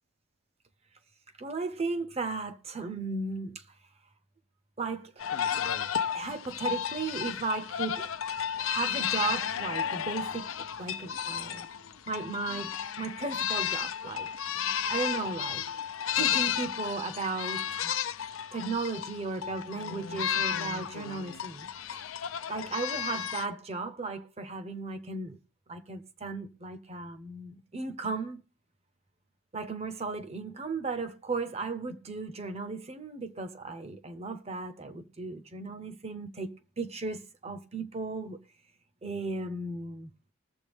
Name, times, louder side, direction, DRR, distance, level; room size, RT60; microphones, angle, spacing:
voice 1, 1.4-3.6 4.8-5.2 6.1-8.1 8.6-11.7 12.1-15.6 16.1-17.9 18.5-22.1 22.5-25.4 25.7-28.4 29.5-38.4 39.0-40.1, right 3 dB, 30° right, 0.7 m, -36 dB
sound 1, 5.2-23.5, left 8 dB, 85° left, 0.6 m, -33 dB
20.5 x 7.3 x 3.5 m
head